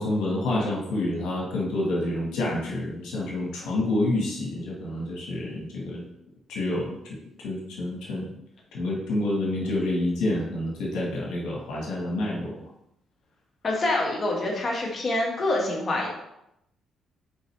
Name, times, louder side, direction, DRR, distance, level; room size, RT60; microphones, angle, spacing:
voice 1, 0.0-6.0 6.5-8.3 8.7-12.6, left 1 dB, 90° left, -3 dB, 1.5 m, -28 dB
voice 2, 13.6-16.1, left 2 dB, 40° left, -1 dB, 1.7 m, -26 dB
6.3 x 4.8 x 3.3 m, 0.82 s
cardioid pair, 90°, 0 cm